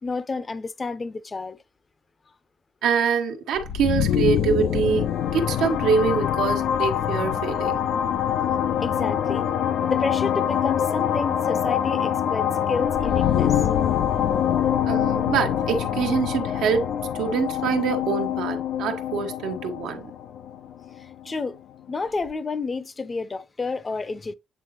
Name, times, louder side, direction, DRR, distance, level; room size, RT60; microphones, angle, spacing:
voice 1, 0.0-1.6 8.8-9.5 9.9-13.6 21.0-21.6 21.9-24.3, left 4 dB, 30° left, 0.7 m, -30 dB
voice 2, 2.8-7.8 14.8-20.1, right 6 dB, 85° right, 1.2 m, -25 dB
sound 1, 3.6-21.2, left 9 dB, 80° left, 0.6 m, -24 dB
8.3 x 3.8 x 3.1 m
cardioid pair, 90°, 0 cm